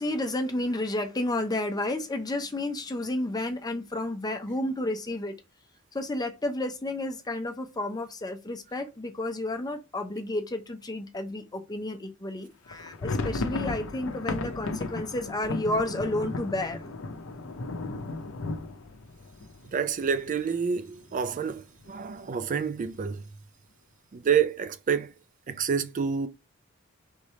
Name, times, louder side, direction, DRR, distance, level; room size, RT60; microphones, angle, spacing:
voice 1, 0.0-5.3 5.9-16.9, left 1 dB, 20° left, 0.6 m, -31 dB
sound 1, 12.7-20.4 20.7-20.8 21.1-21.3 21.8-22.3, left 3 dB, 65° left, 0.6 m, -34 dB
voice 2, 19.7-23.2 24.1-25.1 25.5-26.3, right 6 dB, 40° right, 0.3 m, -28 dB
3.6 x 3.3 x 4.1 m
head